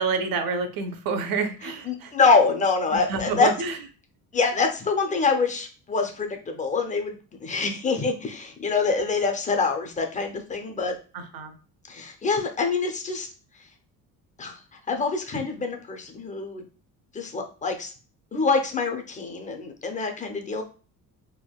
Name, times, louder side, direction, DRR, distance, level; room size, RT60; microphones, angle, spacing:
voice 1, 0.0-2.1 2.9-3.8 11.1-11.5, right 5 dB, 65° right, 7 dB, 0.6 m, -28 dB
voice 2, 1.9-3.5 4.3-7.1 7.4-11.0 11.9-13.3 14.4-14.6 14.9-16.6 17.1-17.9 18.3-20.6, left 4 dB, 20° left, 4 dB, 0.4 m, -25 dB
3.5 x 2.1 x 2.2 m, 0.37 s
cardioid pair, 135°, 37 cm